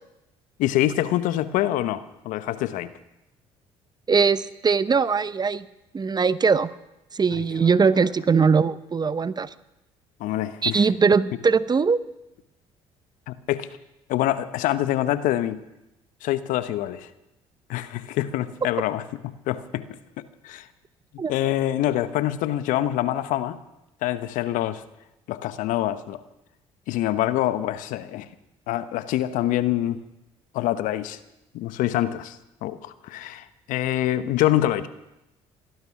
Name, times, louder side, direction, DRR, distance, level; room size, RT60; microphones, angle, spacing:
voice 1, 0.6-2.9 7.3-7.7 10.2-10.9 13.3-13.7 14.1-15.6 16.2-17.1 17.7-20.0 20.4-20.7 21.1-23.6 24.0-24.8 25.3-26.2 26.9-28.3 28.7-30.0 30.5-31.2 31.5-34.9, left 13 dB, 70° left, 13 dB, 1.0 m, -25 dB
voice 2, 4.1-5.7 5.9-6.7 7.1-9.5 10.6-12.0 21.2-21.3, right 5 dB, 30° right, 16 dB, 0.8 m, -21 dB
18.5 x 12.5 x 6.0 m, 0.92 s
hypercardioid pair, 60°, 14 cm